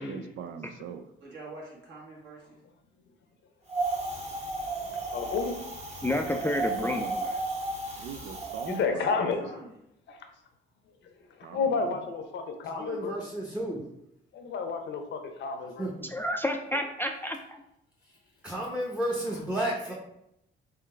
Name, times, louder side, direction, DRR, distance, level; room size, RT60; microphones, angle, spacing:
voice 1, 0.0-1.0 8.0-9.3 11.4-12.0, right 7 dB, 80° right, 9 dB, 0.4 m, -42 dB
voice 2, 1.2-2.6 8.9-9.7 19.6-19.9, right 2 dB, 60° right, -3 dB, 1.5 m, -46 dB
Wind, 3.7-8.8, right 2 dB, 35° right, 1.0 m, -33 dB
voice 3, 5.1-5.7 8.7-9.5 10.1-10.2 11.4-13.1 14.3-15.9, left 5 dB, 65° left, 5 dB, 0.7 m, -31 dB
voice 4, 6.0-7.4 16.1-17.6, left 1 dB, 10° left, 4 dB, 0.3 m, -30 dB
voice 5, 12.6-13.8 15.8-15.9 18.4-19.9, right 1 dB, 5° right, -2 dB, 0.7 m, -32 dB
3.8 x 3.3 x 3.3 m, 0.82 s
cardioid pair, 90°, 20 cm